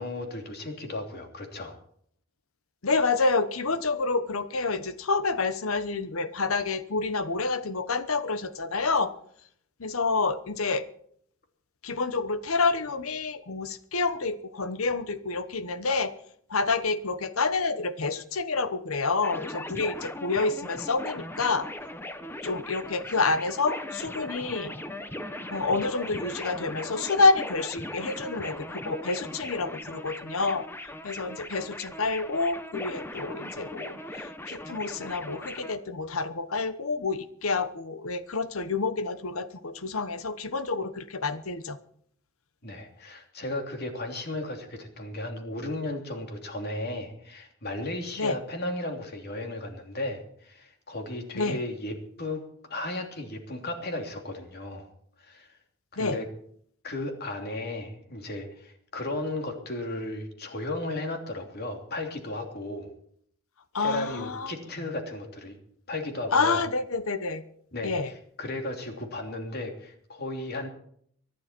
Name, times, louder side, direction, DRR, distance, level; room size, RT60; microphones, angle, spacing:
voice 1, 0.0-1.7 42.6-52.4 52.7-54.9 55.2-55.5 55.9-56.3 56.8-62.9 63.8-65.6 65.9-66.6 67.7-70.7, left 2 dB, 50° left, 3 dB, 3.0 m, -35 dB
voice 2, 2.8-9.1 9.8-10.9 11.8-16.1 16.5-21.7 22.4-24.7 25.5-41.8 48.2-48.4 51.3-51.6 56.0-56.2 63.7-64.5 66.3-67.4 67.8-68.1, left 3 dB, 85° left, 12 dB, 1.1 m, -28 dB
sound 1, 19.2-35.7, left 1 dB, 10° left, 1.0 m, -39 dB
24.0 x 11.0 x 4.5 m, 0.64 s
head